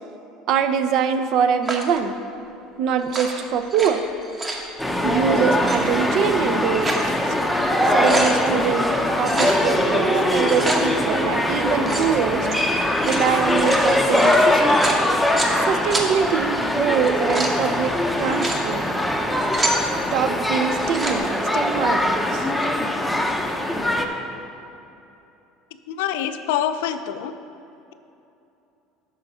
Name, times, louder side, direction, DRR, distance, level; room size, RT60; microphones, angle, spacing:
voice 1, 0.5-2.1 2.8-4.0 5.0-7.3 7.8-12.5 13.0-14.8 15.7-18.8 20.1-22.5, right 7 dB, 55° right, 10 dB, 0.5 m, -24 dB
sound 1, 1.6-2.0 3.0-3.9 4.2-4.7 5.5-5.8 6.5-7.1 7.5-7.6 7.8-8.4 9.2-9.6 10.3-10.8 11.8-12.1 12.8-15.6 15.9-16.1 16.9-17.6 18.2-18.6 19.2-19.8 20.7-21.2, right 2 dB, 20° right, 1.0 m, -28 dB
sound 2, 4.8-24.1, left 1 dB, ahead, 0.6 m, -22 dB
voice 2, 25.9-27.3, left 10 dB, 90° left, 10 dB, 0.4 m, -25 dB
10.5 x 3.9 x 6.0 m, 2.9 s
cardioid pair, 130°, 0 cm